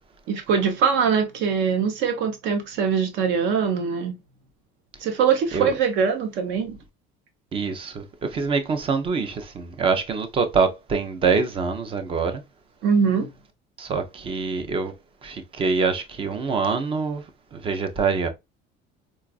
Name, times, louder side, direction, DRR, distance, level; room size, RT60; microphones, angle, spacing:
voice 1, 0.3-4.1 5.0-6.8 12.8-13.3, right 6 dB, 65° right, 0.9 m, -22 dB
voice 2, 7.5-12.4 13.8-14.9 15.2-17.2 17.5-18.3, right 5 dB, 25° right, 0.5 m, -25 dB
3.9 x 2.4 x 2.3 m
cardioid pair, 155°, 20 cm